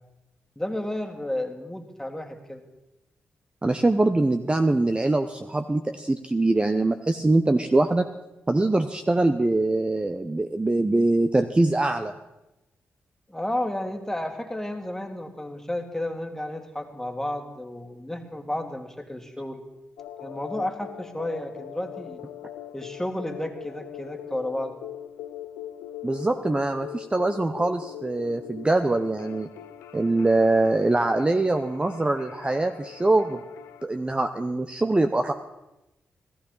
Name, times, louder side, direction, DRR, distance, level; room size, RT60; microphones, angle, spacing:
voice 1, 0.6-2.6 13.3-19.6 20.2-22.2 22.7-24.8, left 1 dB, 10° left, 4 dB, 2.0 m, -32 dB
voice 2, 3.6-8.1 8.5-12.1 26.0-29.5 29.9-33.4 33.8-35.3, right 2 dB, 20° right, 7 dB, 0.7 m, -23 dB
sound 1, 20.0-33.8, left 11 dB, 90° left, 0.6 m, -41 dB
15.0 x 14.0 x 4.0 m, 0.97 s
supercardioid pair, 45°, 5 cm